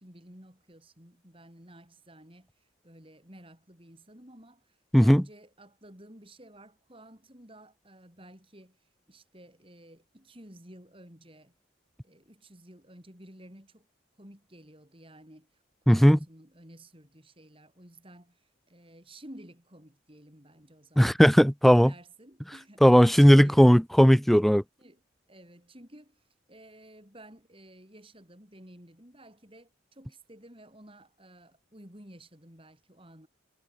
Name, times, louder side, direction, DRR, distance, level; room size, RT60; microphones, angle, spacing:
voice 1, 0.0-11.5 12.0-13.9 14.1-21.2 21.7-22.8 23.1-23.7 24.8-25.0 25.3-33.3, right 1 dB, 25° right, 5.6 m, -53 dB
voice 2, 15.9-16.2 21.0-21.9 22.8-24.6, equal, ahead, 0.5 m, -17 dB
head